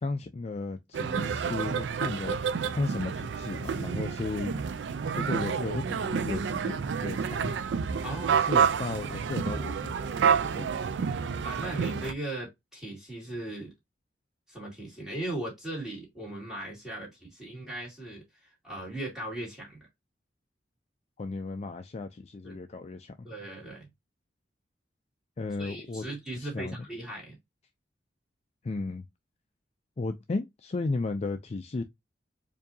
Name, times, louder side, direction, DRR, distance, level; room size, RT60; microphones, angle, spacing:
voice 1, 0.0-4.5 5.2-7.5 8.3-9.8 10.6-11.2 21.2-23.3 25.4-26.0 26.4-26.8 28.6-29.1 30.0-31.8, left 3 dB, 35° left, 0.4 m, -34 dB
sound 1, 0.9-12.1, right 6 dB, 75° right, 0.4 m, -29 dB
voice 2, 8.0-8.5 11.4-13.7 14.5-19.9 22.4-22.6 23.2-23.9 25.6-27.4, right 1 dB, 5° right, 2.2 m, -38 dB
4.6 x 2.7 x 2.6 m
head